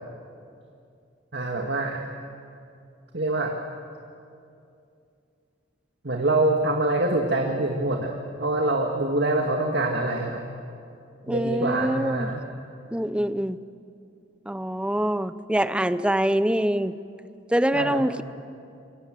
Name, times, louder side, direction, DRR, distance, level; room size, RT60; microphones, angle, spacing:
voice 1, 1.3-2.1 3.1-3.6 6.0-10.4 11.3-12.4 17.7-18.0, right 2 dB, 60° right, 1 dB, 1.9 m, -25 dB
voice 2, 11.3-12.3 12.9-13.6 14.5-16.9 17.5-18.2, right 1 dB, 5° right, 14 dB, 0.6 m, -24 dB
28.0 x 25.0 x 7.6 m, 2.5 s
head